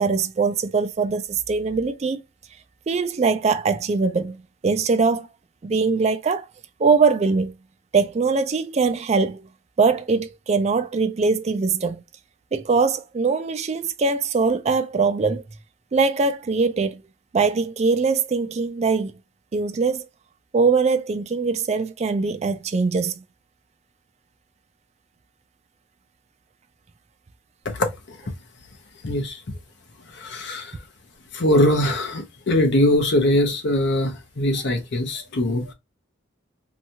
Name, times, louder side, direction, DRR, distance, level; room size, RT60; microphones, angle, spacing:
voice 1, 0.0-2.2 2.9-5.3 5.6-6.5 6.8-7.5 7.9-9.4 9.8-12.0 12.5-15.4 15.9-17.0 17.3-19.1 19.5-20.1 20.5-23.2, right 4 dB, 30° right, 0.3 m, -22 dB
voice 2, 27.7-28.2 29.0-29.4 30.1-30.8 31.3-35.7, left 1 dB, 55° left, 0.7 m, -22 dB
2.8 x 2.3 x 2.7 m
head